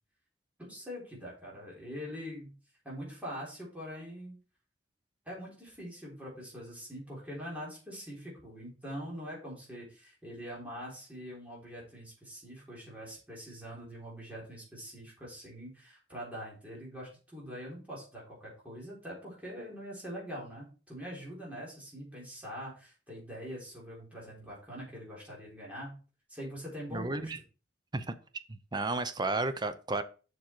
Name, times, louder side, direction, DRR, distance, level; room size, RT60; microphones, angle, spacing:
voice 1, 0.6-2.5 2.8-4.4 5.3-26.0 26.3-27.3, equal, 10° right, 3.8 m, -43 dB
voice 2, 26.9-27.4 27.9-28.1 28.5-30.0, right 2 dB, 25° right, 0.6 m, -32 dB
7.3 x 6.3 x 4.5 m
head